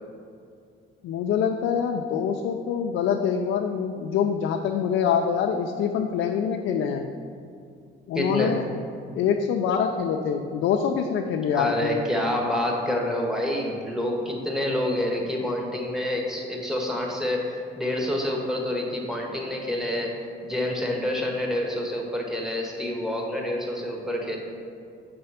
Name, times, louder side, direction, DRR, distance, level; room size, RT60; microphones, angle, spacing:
voice 1, 1.0-7.0 8.1-8.7 9.1-12.0, left 7 dB, 80° left, 3 dB, 0.5 m, -25 dB
voice 2, 8.1-8.7 11.5-20.1 20.4-24.4, left 1 dB, 5° right, -1 dB, 1.5 m, -27 dB
7.7 x 4.2 x 5.7 m, 2.4 s
cardioid pair, 90°, 20 cm